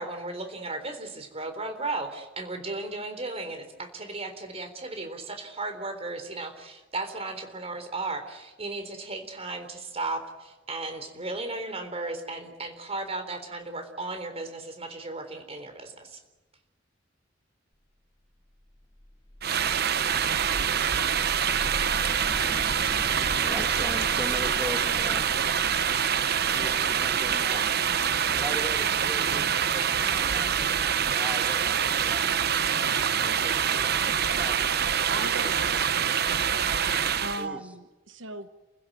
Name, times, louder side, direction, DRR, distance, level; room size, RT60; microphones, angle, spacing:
voice 1, 0.0-16.2, right 2 dB, 35° right, 7 dB, 3.8 m, -35 dB
sound 1, 18.5-29.3, left 1 dB, 25° left, 1.8 m, -42 dB
sound 2, 19.4-37.5, right 8 dB, 55° right, 0.9 m, -25 dB
voice 2, 23.5-25.3 26.4-27.8 28.3-30.9 31.1-32.5 33.2-34.7 37.4-37.6, equal, 5° right, 4 dB, 1.9 m, -40 dB
voice 3, 34.5-36.2 37.2-38.5, right 2 dB, 85° right, 9 dB, 1.3 m, -38 dB
29.0 x 16.0 x 9.2 m, 1.1 s
head